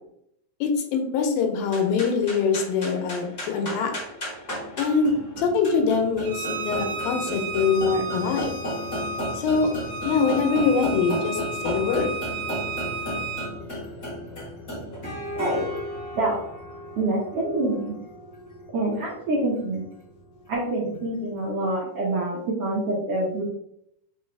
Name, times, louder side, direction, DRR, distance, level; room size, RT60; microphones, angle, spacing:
voice 1, 0.6-3.9 4.8-8.6 9.3-9.7 10.0-12.1, left 5 dB, 90° left, 3 dB, 2.5 m, -23 dB
sound 1, 1.6-21.1, equal, 30° left, 1.0 m, -35 dB
Bowed string instrument, 6.3-13.5, right 2 dB, 65° right, 2.0 m, -33 dB
voice 2, 17.0-17.9 18.7-19.9 20.5-23.4, right 2 dB, 90° right, -5 dB, 1.3 m, -26 dB
5.4 x 3.9 x 2.2 m, 0.75 s
omnidirectional pair, 4.1 m